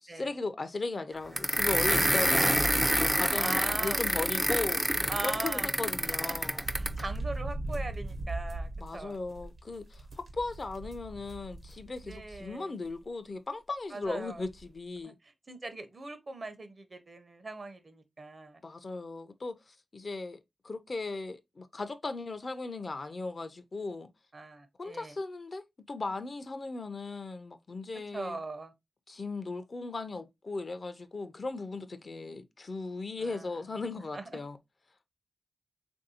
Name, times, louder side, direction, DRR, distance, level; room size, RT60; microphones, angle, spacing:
voice 1, 0.0-4.8 5.2-6.6 8.8-15.2 18.6-20.4 20.6-24.1 24.8-25.6 25.9-28.4 29.1-34.6, left 3 dB, 55° left, 0.4 m, -37 dB
sound 1, 1.4-7.0, right 1 dB, 10° right, 0.4 m, -27 dB
voice 2, 3.4-4.0 5.1-5.7 6.2-9.2 12.0-12.7 13.9-14.4 15.2-18.6 24.3-25.2 28.1-28.7 33.2-33.5 34.1-34.2, right 2 dB, 50° right, 0.6 m, -40 dB
sound 2, 5.8-12.5 12.8-12.9 14.0-14.1 14.4-14.6, right 2 dB, 75° right, 0.9 m, -40 dB
3.3 x 2.6 x 2.7 m
cardioid pair, 60°, 0 cm